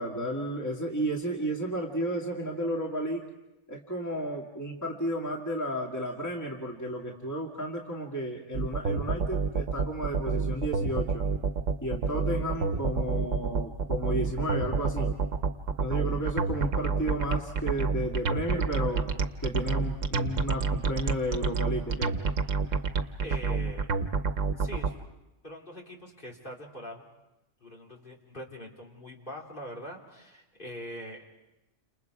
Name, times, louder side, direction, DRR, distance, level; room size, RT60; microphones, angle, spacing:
voice 1, 0.0-3.3 3.7-11.3 11.8-15.1 15.8-19.1 19.4-22.1, equal, 15° left, -1 dB, 2.2 m, -32 dB
sound 1, 8.5-24.9, right 4 dB, 90° right, 1.4 m, -28 dB
voice 2, 23.2-23.9 24.6-24.9 25.4-27.1 27.6-31.2, left 1 dB, 45° left, 0 dB, 3.5 m, -43 dB
30.0 x 27.5 x 4.8 m, 0.97 s
omnidirectional pair, 1.3 m